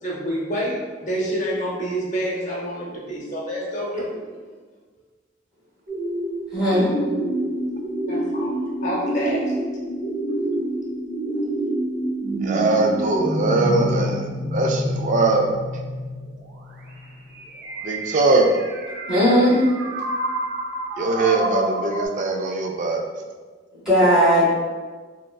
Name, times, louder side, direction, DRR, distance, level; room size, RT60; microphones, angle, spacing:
voice 1, 0.0-4.3 8.1-9.5 11.3-11.4, equal, 40° left, -5 dB, 0.7 m, -28 dB
sound 1, 5.9-22.1, right 1 dB, 60° right, 0.7 m, -27 dB
voice 2, 6.5-6.9 19.1-19.6 23.8-24.5, equal, 5° right, -10 dB, 1.0 m, -17 dB
voice 3, 12.4-14.3 14.5-15.5 17.8-18.5 21.0-23.0, right 3 dB, 45° right, 3 dB, 0.3 m, -21 dB
3.0 x 2.5 x 2.3 m, 1.4 s
head